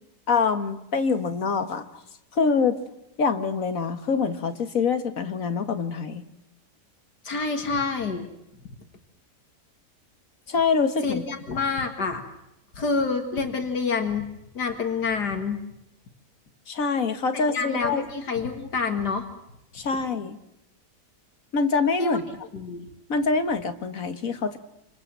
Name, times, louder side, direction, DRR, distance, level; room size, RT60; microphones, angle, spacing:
voice 1, 0.3-1.9 2.3-2.8 3.2-6.3 10.5-11.2 11.5-11.6 16.7-18.0 19.7-20.4 21.5-22.2 23.1-24.6, left 5 dB, 55° left, 9 dB, 2.0 m, -25 dB
voice 2, 7.2-8.3 11.0-12.2 12.8-15.6 17.3-19.3 22.0-22.2 22.5-22.9, left 4 dB, 75° left, 5 dB, 2.6 m, -27 dB
27.5 x 26.5 x 7.6 m, 0.84 s
omnidirectional pair, 1.8 m